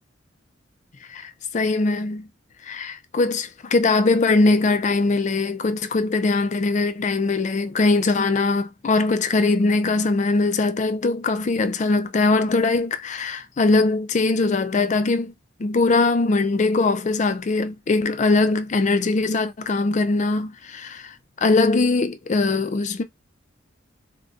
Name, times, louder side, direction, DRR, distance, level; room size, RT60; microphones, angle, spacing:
voice 1, 1.1-2.3 2.7-15.3 15.6-23.0, left 3 dB, 40° left, 0.4 m, -21 dB
2.4 x 2.2 x 3.9 m
head